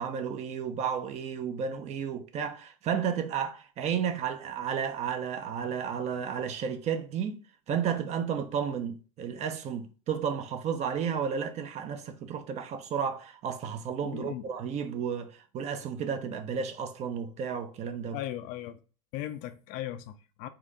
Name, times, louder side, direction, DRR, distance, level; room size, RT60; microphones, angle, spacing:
voice 1, 0.0-18.2, right 7 dB, 35° right, 0.7 m, -32 dB
voice 2, 14.0-14.5 18.1-18.8 19.1-20.5, left 13 dB, 50° left, 0.5 m, -38 dB
4.3 x 2.6 x 3.7 m
hypercardioid pair, 90°, 18 cm